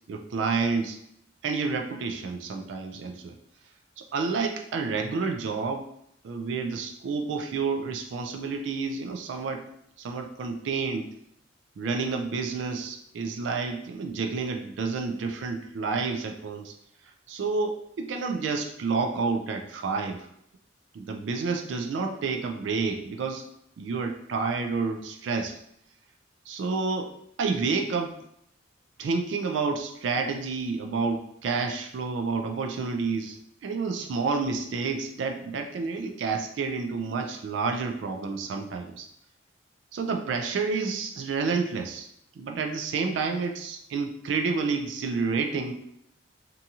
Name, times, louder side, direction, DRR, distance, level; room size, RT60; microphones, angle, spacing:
voice 1, 0.1-1.0 1.4-3.3 4.0-5.8 6.2-9.6 10.0-11.1 11.8-16.7 17.3-20.3 20.9-23.4 23.8-25.6 26.5-27.1 27.4-28.1 29.0-39.1 39.9-42.1 42.4-45.7, right 4 dB, 70° right, 4 dB, 0.3 m, -29 dB
2.8 x 2.7 x 2.3 m, 0.75 s
head